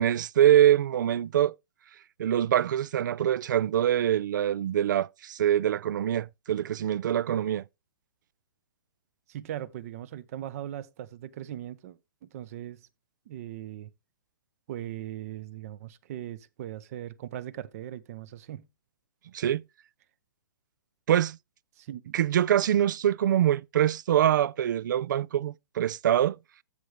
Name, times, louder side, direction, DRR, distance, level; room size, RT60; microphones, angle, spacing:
voice 1, 0.0-1.5 2.2-7.6 19.3-19.6 21.1-21.4 22.1-26.4, right 11 dB, 65° right, 0.4 m, -24 dB
voice 2, 9.3-12.8 13.3-13.9 14.7-18.7 21.8-22.1, right 12 dB, 45° right, 0.8 m, -39 dB
14.5 x 5.0 x 3.3 m
hypercardioid pair, 140°, 11 cm